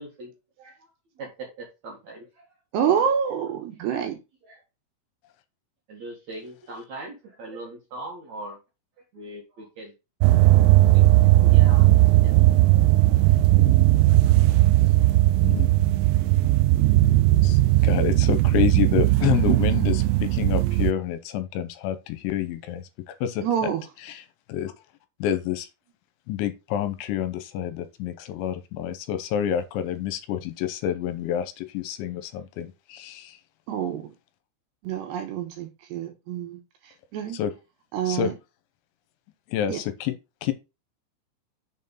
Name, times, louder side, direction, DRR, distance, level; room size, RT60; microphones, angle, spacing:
voice 1, 0.0-0.3 0.6-0.7 1.2-2.5 4.4-4.6 5.9-8.6 9.1-9.9 10.9-12.3, right 2 dB, 55° right, 2.1 m, -40 dB
voice 2, 2.7-4.2 23.4-23.8 33.7-34.1 34.8-37.4 37.9-38.3 39.7-39.8, right 8 dB, 70° right, 2.9 m, -27 dB
sound 1, 10.2-20.9, right 17 dB, 85° right, 2.5 m, -18 dB
voice 3, 17.4-23.4 24.0-24.7 25.2-25.7 26.3-33.4 37.3-37.5 38.1-38.3 39.5-40.1 40.4-40.5, left 10 dB, 80° left, 3.0 m, -28 dB
6.8 x 4.4 x 5.4 m
omnidirectional pair, 5.5 m